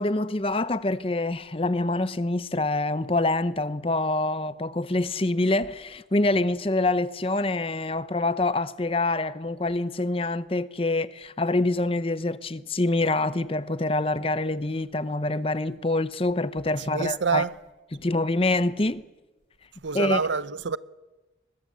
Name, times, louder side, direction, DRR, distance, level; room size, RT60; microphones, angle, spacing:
voice 1, 0.0-17.4 17.9-19.0 19.9-20.2, left 2 dB, 30° left, 0.8 m, -26 dB
voice 2, 16.9-17.5 19.8-20.8, right 5 dB, 85° right, 0.8 m, -26 dB
23.0 x 21.0 x 8.5 m
head